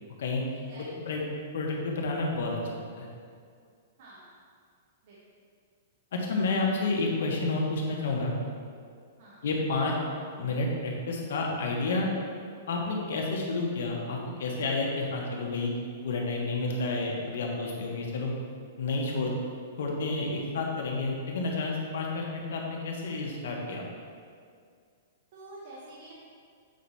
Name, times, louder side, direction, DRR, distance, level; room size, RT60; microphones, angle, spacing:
voice 1, 0.5-0.9 4.0-4.4 5.0-5.2 9.2-9.5 25.3-26.1, right 2 dB, 55° right, -6 dB, 1.4 m, -48 dB
voice 2, 1.5-3.1 6.1-8.3 9.4-9.9 10.4-12.1 12.7-15.7 16.0-18.3 18.8-19.3 19.8-23.8, left 3 dB, 75° left, -1 dB, 1.5 m, -30 dB
8.1 x 4.6 x 4.2 m, 2.2 s
hypercardioid pair, 145°, 0 cm